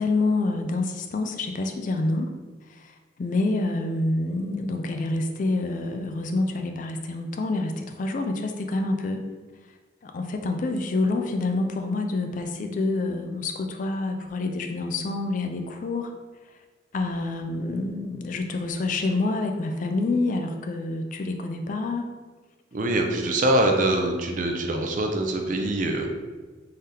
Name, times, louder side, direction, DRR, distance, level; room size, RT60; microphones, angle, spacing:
voice 1, 0.0-2.3 2.7-9.3 10.0-16.1 16.9-22.1, left 2 dB, 40° left, 5 dB, 0.3 m, -27 dB
voice 2, 22.7-26.1, right 1 dB, 40° right, 3 dB, 0.4 m, -24 dB
3.8 x 3.3 x 2.7 m, 1.3 s
head